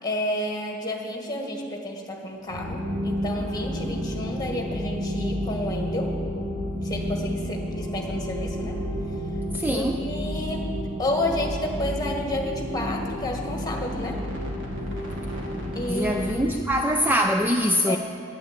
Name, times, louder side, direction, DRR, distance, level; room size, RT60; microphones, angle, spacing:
voice 1, 0.0-6.1 6.8-8.8 9.7-10.6 11.0-14.2 15.7-16.6 17.9-18.0, left 1 dB, 20° left, 1 dB, 1.7 m, -31 dB
sound 1, 2.1-10.6 11.3-17.0, left 1 dB, 30° right, 3.7 m, -45 dB
sound 2, 2.5-16.5, equal, 60° right, 2.2 m, -31 dB
voice 2, 9.5-10.0 15.9-18.0, equal, 10° right, 4 dB, 0.4 m, -23 dB
10.0 x 9.7 x 8.3 m, 2.4 s
head